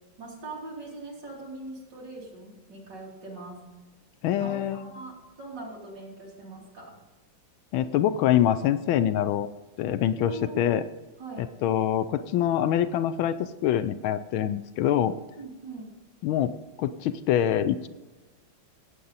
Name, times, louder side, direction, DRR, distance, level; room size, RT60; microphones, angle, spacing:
voice 1, 0.2-3.6 4.4-7.0 10.2-10.7 11.2-11.5 15.4-15.9, right 2 dB, 55° right, -3 dB, 3.5 m, -41 dB
voice 2, 4.2-4.9 7.7-9.5 9.8-10.8 11.4-15.1 16.2-17.9, left 10 dB, 80° left, 12 dB, 1.4 m, -25 dB
16.0 x 8.2 x 4.0 m, 1.2 s
omnidirectional pair, 2.3 m